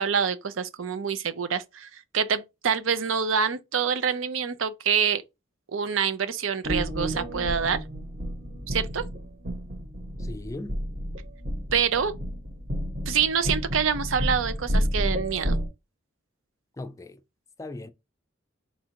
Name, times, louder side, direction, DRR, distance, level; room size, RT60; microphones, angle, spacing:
voice 1, 0.0-5.2 5.7-7.8 8.7-9.0 11.7-12.1 13.1-15.6, right 7 dB, 90° right, 0.6 m, -26 dB
sound 1, 6.6-15.7, equal, 45° right, 1.2 m, -30 dB
voice 2, 10.2-10.8 16.8-17.2 17.6-17.9, left 2 dB, 15° left, 0.4 m, -38 dB
4.1 x 2.5 x 4.4 m
head